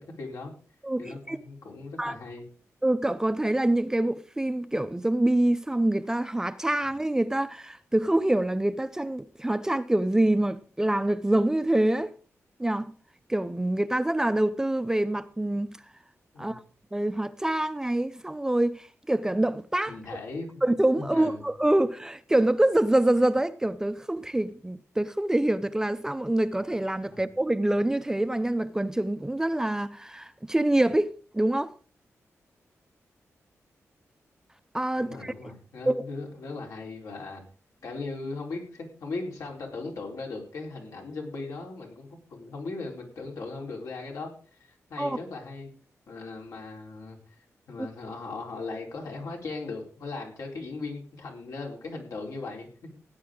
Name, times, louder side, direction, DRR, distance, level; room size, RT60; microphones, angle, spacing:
voice 1, 0.2-0.5 1.0-2.4 16.3-16.6 19.9-20.6 21.0-21.4 27.1-27.2 35.0-37.4 37.8-45.7 46.1-53.0, left 3 dB, 80° left, 4.1 m, -38 dB
voice 2, 0.8-1.4 2.0-2.2 2.8-12.1 12.6-12.9 13.3-15.8 16.4-16.6 16.9-20.0 20.6-31.7 34.7-35.3 35.9-36.0 45.0-45.2, right 1 dB, 10° right, 0.5 m, -25 dB
17.0 x 9.6 x 3.8 m
wide cardioid pair, 125°, 5 cm